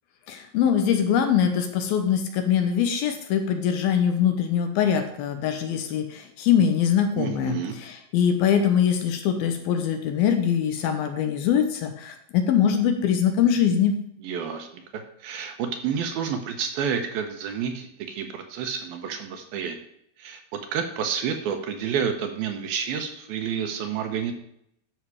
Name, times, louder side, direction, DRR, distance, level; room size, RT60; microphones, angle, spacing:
voice 1, 0.3-14.0, left 8 dB, 75° left, 6 dB, 2.5 m, -23 dB
voice 2, 7.2-7.8 14.2-19.8 20.2-20.4 20.7-24.3, right 7 dB, 75° right, 5 dB, 2.6 m, -29 dB
12.5 x 5.8 x 4.8 m, 0.73 s
omnidirectional pair, 4.8 m